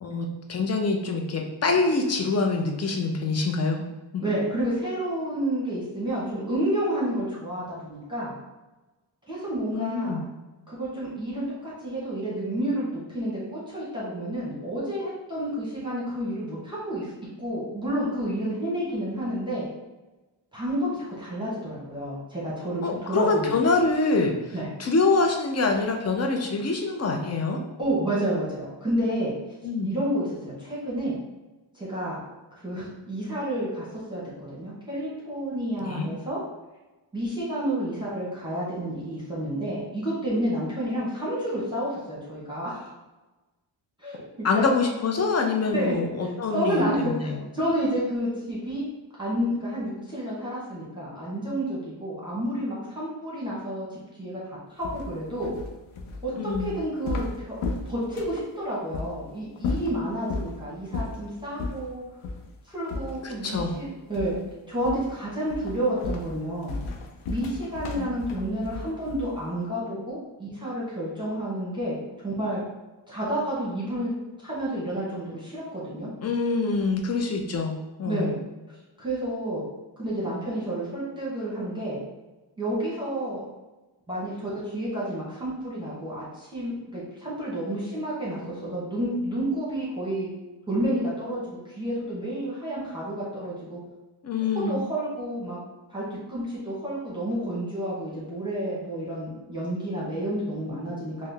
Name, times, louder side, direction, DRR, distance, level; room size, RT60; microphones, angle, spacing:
voice 1, 0.0-3.8 4.1-4.2 9.7-10.2 22.8-24.3 24.8-27.6 29.6-29.9 35.8-36.1 44.4-47.4 56.4-56.7 63.2-63.7 67.9-68.1 76.2-78.3 94.2-94.8, left 3 dB, 35° left, 3 dB, 0.5 m, -25 dB
voice 2, 4.2-8.3 9.3-10.2 10.7-17.1 17.4-19.6 20.5-22.8 23.1-23.5 24.5-24.7 27.8-29.3 29.8-31.2 31.7-32.2 32.6-36.4 37.1-42.9 44.0-44.7 45.7-46.0 46.2-48.9 49.2-55.5 56.2-57.5 57.9-62.0 62.7-64.4 64.7-66.7 67.3-72.0 72.2-72.6 73.1-74.1 74.4-76.1 78.1-78.4 79.0-79.6 80.0-82.0 82.6-83.4 84.1-90.3 90.7-93.8 94.7-95.6 95.9-101.3, right 1 dB, 10° right, -7 dB, 0.9 m, -30 dB
sound 1, 54.8-58.5 58.9-59.1 59.6-60.5 60.9-61.2 61.6-61.8 62.2-62.5 62.9-63.8 64.1-64.5 64.8-65.2 65.5-69.4, left 3 dB, 90° left, 0.6 m, -34 dB
3.7 x 2.1 x 3.3 m, 1.1 s
wide cardioid pair, 125°, 48 cm